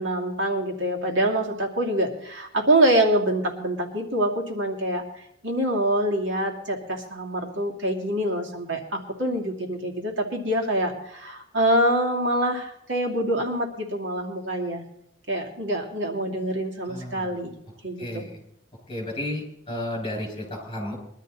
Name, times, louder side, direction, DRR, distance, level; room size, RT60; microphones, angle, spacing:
voice 1, 0.0-14.8 15.3-17.5 17.8-18.3, right 1 dB, 90° right, 1 dB, 2.6 m, -25 dB
voice 2, 16.8-17.3 18.0-18.4 18.9-21.0, left 1 dB, 25° left, 1 dB, 6.4 m, -32 dB
21.5 x 12.5 x 4.1 m, 0.73 s
head